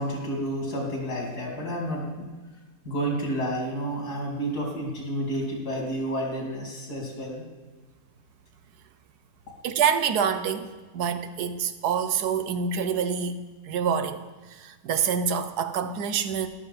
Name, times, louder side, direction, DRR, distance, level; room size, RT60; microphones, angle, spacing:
voice 1, 0.0-2.2 2.8-7.4, right 1 dB, 85° left, -1 dB, 3.3 m, -30 dB
voice 2, 9.6-13.4 13.7-14.2 14.5-16.5, right 7 dB, 90° right, 10 dB, 1.3 m, -26 dB
13.5 x 11.5 x 4.1 m, 1.3 s
omnidirectional pair, 1.6 m